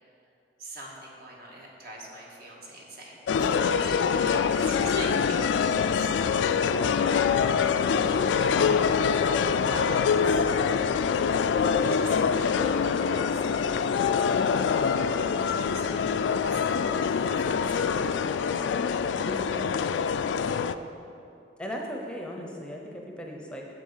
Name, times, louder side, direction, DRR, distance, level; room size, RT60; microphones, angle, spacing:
voice 1, 0.6-6.1 6.7-7.5 8.3-11.0 11.7-13.7 14.9-18.1, right 1 dB, 55° right, -2 dB, 1.7 m, -44 dB
sound 1, 3.3-20.7, left 6 dB, 80° left, 0.3 m, -25 dB
voice 2, 19.2-19.9 21.6-23.7, equal, 5° left, 0 dB, 0.7 m, -38 dB
8.1 x 7.3 x 5.6 m, 2.7 s
head